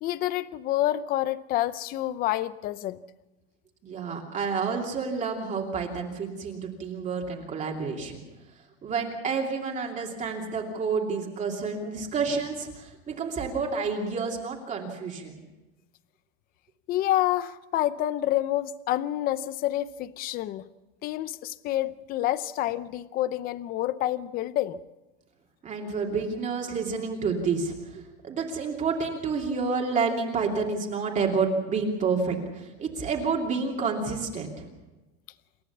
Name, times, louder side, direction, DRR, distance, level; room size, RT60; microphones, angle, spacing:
voice 1, 0.0-3.0 16.9-20.6 21.0-24.8, left 14 dB, 25° left, 16 dB, 0.6 m, -28 dB
voice 2, 3.8-8.2 8.8-15.4 25.6-34.7, right 5 dB, 20° right, 0 dB, 2.7 m, -29 dB
28.0 x 14.5 x 7.2 m, 1.1 s
supercardioid pair, 165°, 34 cm